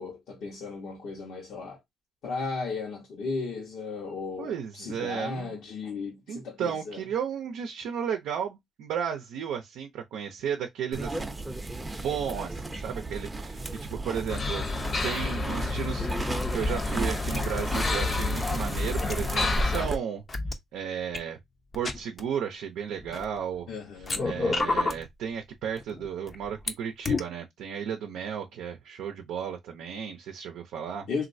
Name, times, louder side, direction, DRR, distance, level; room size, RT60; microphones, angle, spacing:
voice 1, 0.0-1.8 2.2-7.0 23.7-24.4 31.1-31.2, left 4 dB, 75° left, 1.0 m, -35 dB
voice 2, 4.4-5.5 6.3-11.3 12.0-14.7 15.0-20.2 20.7-21.4 21.7-23.7 24.2-31.1, right 8 dB, 85° right, 0.5 m, -34 dB
sound 1, 10.9-20.0, right 2 dB, 15° right, 0.6 m, -34 dB
sound 2, 14.3-19.9, left 3 dB, 50° left, 0.9 m, -30 dB
sound 3, 17.3-17.4 17.7-19.8 20.3-20.5 21.1-21.2 21.7-22.2 23.0-23.6 24.0-25.0 25.8-26.7 27.0-27.2, left 3 dB, 35° left, 0.6 m, -31 dB
3.1 x 2.5 x 2.6 m
cardioid pair, 90°, 0 cm